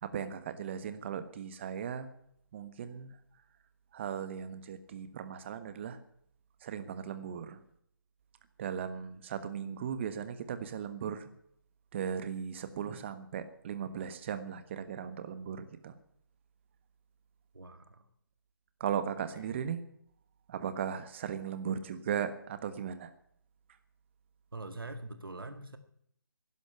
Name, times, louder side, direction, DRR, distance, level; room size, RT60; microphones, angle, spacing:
voice 1, 0.0-2.1 2.5-3.1 3.9-6.0 6.6-7.6 8.6-11.3 11.9-15.9 18.8-19.8 20.5-23.1, right 8 dB, 30° right, 11 dB, 1.4 m, -37 dB
voice 2, 17.5-18.0 19.3-19.6 24.5-25.8, right 2 dB, 75° right, 9 dB, 1.8 m, -44 dB
12.0 x 11.0 x 9.7 m, 0.68 s
figure-of-eight pair, 145°, 12 cm